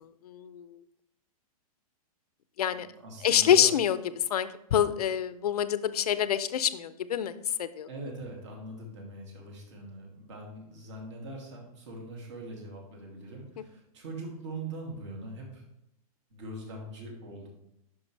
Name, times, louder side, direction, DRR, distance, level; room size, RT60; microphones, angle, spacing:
voice 1, 0.2-0.8 2.6-2.9 3.2-4.0 4.3-7.3 7.6-7.9, left 9 dB, 80° left, 13 dB, 0.6 m, -26 dB
voice 2, 2.7-3.7 7.9-15.6 16.3-17.5, right 2 dB, 50° right, 0 dB, 2.6 m, -42 dB
9.9 x 5.8 x 3.3 m, 0.81 s
hypercardioid pair, 165°, 19 cm